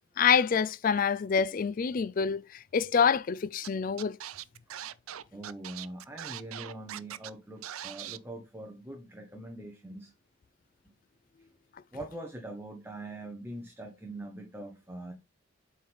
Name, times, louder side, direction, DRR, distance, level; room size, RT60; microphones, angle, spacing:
voice 1, 0.2-4.2, left 6 dB, 40° left, 0.3 m, -26 dB
Scratching (performance technique), 3.6-3.7 4.0-7.3 7.6-8.2, right 11 dB, 85° right, 0.5 m, -41 dB
voice 2, 5.3-10.1 11.9-15.1, right 1 dB, 10° right, 1.0 m, -43 dB
8.2 x 4.5 x 3.4 m
head